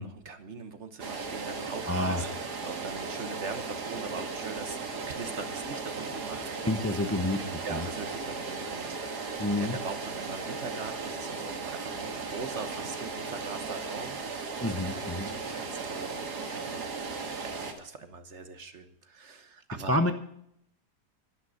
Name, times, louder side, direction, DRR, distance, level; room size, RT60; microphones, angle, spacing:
voice 1, 0.0-6.7 7.6-9.2 9.6-14.5 14.8-20.0, right 4 dB, 45° right, 10 dB, 1.3 m, -42 dB
sound 1, 1.0-17.7, right 4 dB, 75° right, 2.2 m, -36 dB
voice 2, 1.9-2.3 6.7-7.9 9.4-9.8 14.6-15.3 19.9-20.1, left 1 dB, 15° left, 7 dB, 0.6 m, -28 dB
11.5 x 11.5 x 6.4 m, 0.72 s
omnidirectional pair, 1.7 m